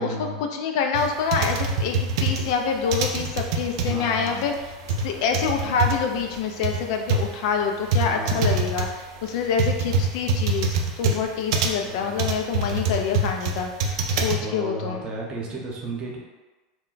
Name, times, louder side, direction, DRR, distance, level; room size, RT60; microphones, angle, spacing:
voice 1, 0.0-0.4 3.8-4.4 5.7-6.0 8.0-8.7 11.7-12.3 14.4-16.2, right 2 dB, 35° right, -2 dB, 0.7 m, -34 dB
voice 2, 0.5-4.5 5.0-15.0, left 6 dB, 65° left, 3 dB, 0.4 m, -26 dB
sound 1, 0.9-14.4, right 3 dB, 70° right, 0.4 m, -25 dB
2.2 x 2.1 x 3.8 m, 1.2 s
supercardioid pair, 115°, 3 cm